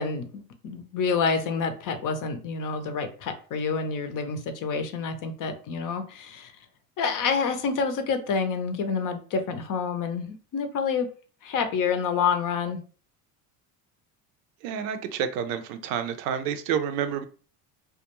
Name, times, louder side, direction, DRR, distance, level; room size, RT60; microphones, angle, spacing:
voice 1, 0.0-6.5 7.0-11.1 11.4-12.8, left 5 dB, 40° left, 8 dB, 0.5 m, -28 dB
voice 2, 14.6-17.3, right 8 dB, 85° right, 9 dB, 0.6 m, -29 dB
2.3 x 2.2 x 2.9 m, 0.39 s
supercardioid pair, 85°, 49 cm